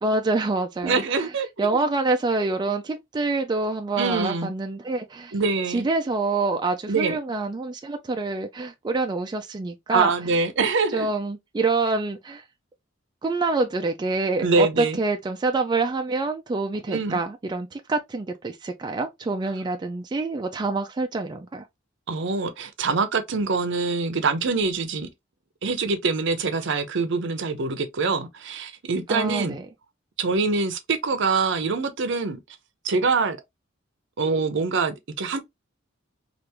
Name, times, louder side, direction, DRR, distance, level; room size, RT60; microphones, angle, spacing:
voice 1, 0.0-1.3 1.6-5.4 5.7-10.1 10.9-12.4 13.2-21.7 29.1-29.7, right 3 dB, 20° right, 0.3 m, -26 dB
voice 2, 0.8-1.9 4.0-4.5 5.3-5.9 6.9-7.2 9.9-11.1 14.4-15.0 16.9-17.2 22.1-25.1 25.6-29.6 30.2-32.4 32.8-33.4 34.2-35.4, right 4 dB, 65° right, 0.6 m, -24 dB
3.3 x 2.4 x 2.9 m
head